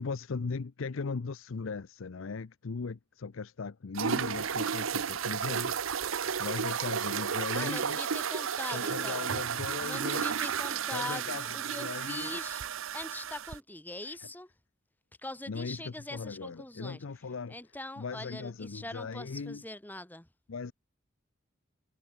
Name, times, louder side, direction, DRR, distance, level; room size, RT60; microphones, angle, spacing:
voice 1, 0.0-8.0 8.7-10.3 10.9-11.4 11.8-12.4 14.0-14.2 15.5-17.6 18.0-19.6 20.5-20.7, left 4 dB, 85° left, 0.6 m, -38 dB
sound 1, 3.9-13.6, right 7 dB, 90° right, 0.8 m, -33 dB
voice 2, 7.5-9.2 9.8-12.6 12.9-14.5 15.2-17.0 17.5-20.3, left 2 dB, 10° left, 1.3 m, -42 dB
head